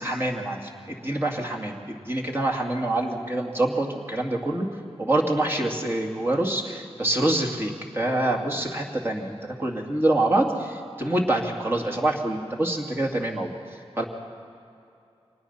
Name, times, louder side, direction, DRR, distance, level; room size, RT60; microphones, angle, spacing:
voice 1, 0.0-4.7 5.0-13.5 14.0-14.1, right 1 dB, 20° right, 1 dB, 2.5 m, -26 dB
25.0 x 19.0 x 5.7 m, 2.6 s
wide cardioid pair, 100°, 10 cm